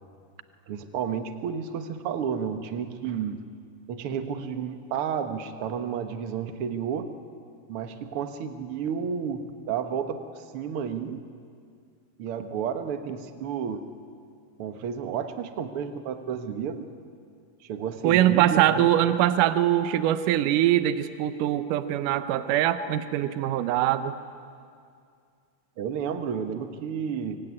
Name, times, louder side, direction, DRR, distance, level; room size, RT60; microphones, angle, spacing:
voice 1, 0.7-3.4 3.9-7.1 7.7-11.2 12.2-13.8 14.6-16.8 17.6-18.9 25.8-27.4, right 7 dB, 55° right, 8 dB, 1.8 m, -31 dB
voice 2, 18.0-24.1, right 12 dB, 75° right, 11 dB, 2.4 m, -23 dB
25.5 x 24.0 x 9.8 m, 2.3 s
omnidirectional pair, 3.9 m